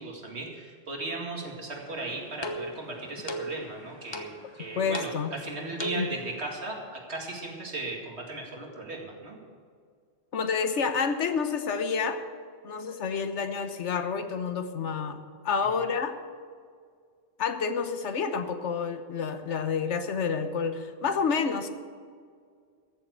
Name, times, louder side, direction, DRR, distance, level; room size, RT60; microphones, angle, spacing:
voice 1, 0.0-9.4, right 2 dB, 70° right, 0 dB, 2.6 m, -37 dB
sound 1, 1.8-6.4, equal, 25° left, 0.9 m, -39 dB
voice 2, 4.8-5.3 6.0-6.1 10.3-12.2 12.6-16.2 17.4-21.7, left 5 dB, 85° left, 9 dB, 1.3 m, -29 dB
14.0 x 7.3 x 8.3 m, 2.1 s
omnidirectional pair, 1.2 m